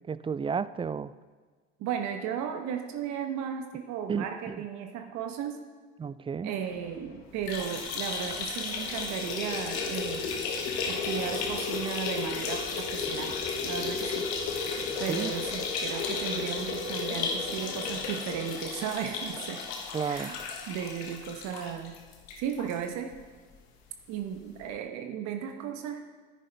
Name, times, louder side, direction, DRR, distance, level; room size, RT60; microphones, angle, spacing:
voice 1, 0.1-1.1 4.1-4.6 6.0-6.5 15.1-15.3 19.9-20.4, right 6 dB, 20° right, 16 dB, 0.3 m, -32 dB
voice 2, 1.8-5.6 6.4-10.3 10.9-13.3 13.6-14.3 15.0-19.6 20.1-20.4 20.7-22.0 22.4-23.2 24.1-26.0, right 8 dB, 70° right, 5 dB, 1.1 m, -35 dB
sound 1, 6.6-18.5, left 4 dB, 65° left, 1.6 m, -48 dB
sound 2, 7.4-22.8 23.1-23.2 23.5-23.6 24.6-24.7, left 5 dB, 85° left, 1.3 m, -33 dB
10.0 x 9.8 x 3.4 m, 1.4 s
hypercardioid pair, 75°, 30 cm